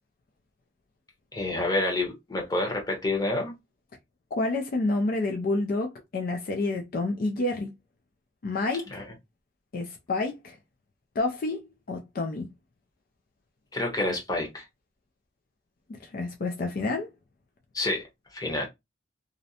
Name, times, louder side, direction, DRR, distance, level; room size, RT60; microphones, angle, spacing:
voice 1, 1.3-3.5 8.9-9.1 13.7-14.6 17.7-18.0 18.3-18.7, left 2 dB, 20° left, 0.9 m, -28 dB
voice 2, 4.4-7.7 8.4-9.0 9.7-10.6 11.2-12.5 15.9-17.1, left 2 dB, 50° left, 0.4 m, -29 dB
2.5 x 2.0 x 2.7 m
head